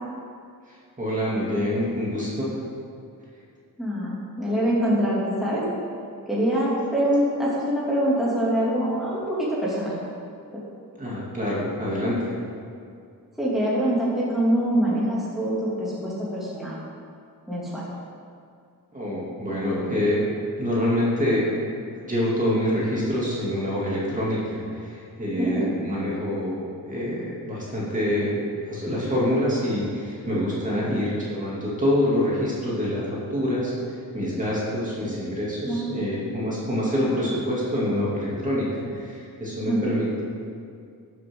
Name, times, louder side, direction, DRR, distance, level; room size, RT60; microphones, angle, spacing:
voice 1, 0.7-2.6 11.0-12.3 18.9-20.3 20.6-21.6 21.9-33.7 34.1-40.2, left 1 dB, 20° right, -7 dB, 2.8 m, -26 dB
voice 2, 3.8-5.7 6.3-10.0 13.4-16.8 17.5-17.8 25.4-25.8 30.7-31.0 35.6-35.9 39.7-39.8, right 1 dB, ahead, -9 dB, 2.8 m, -24 dB
14.0 x 7.6 x 3.9 m, 2.3 s
cardioid pair, 105°, 36 cm